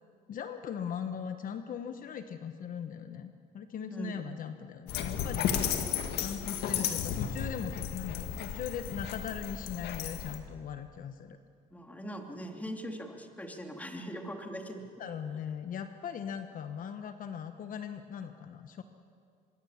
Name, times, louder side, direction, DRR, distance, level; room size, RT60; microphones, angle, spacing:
voice 1, 0.3-5.9 6.2-11.4 15.0-18.8, left 8 dB, 55° left, 8 dB, 1.1 m, -39 dB
voice 2, 3.9-4.3 11.7-14.9, equal, 10° left, 3 dB, 2.7 m, -41 dB
Dog, 4.9-10.4, left 8 dB, 80° left, 1.9 m, -34 dB
25.5 x 22.5 x 7.2 m, 2.3 s
cardioid pair, 110°, 17 cm